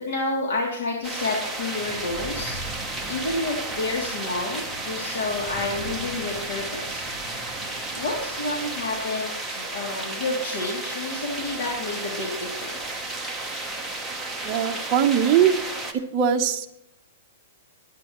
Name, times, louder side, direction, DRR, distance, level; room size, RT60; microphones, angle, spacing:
voice 1, 0.0-2.6 3.1-7.0 7.9-13.0, left 2 dB, 70° left, -1 dB, 2.7 m, -30 dB
sound 1, 1.0-15.9, right 2 dB, ahead, 1.0 m, -32 dB
voice 2, 14.4-15.5 16.1-16.7, right 8 dB, 25° right, 3 dB, 0.9 m, -20 dB
18.5 x 9.7 x 3.1 m, 0.81 s
hypercardioid pair, 170°, 0 cm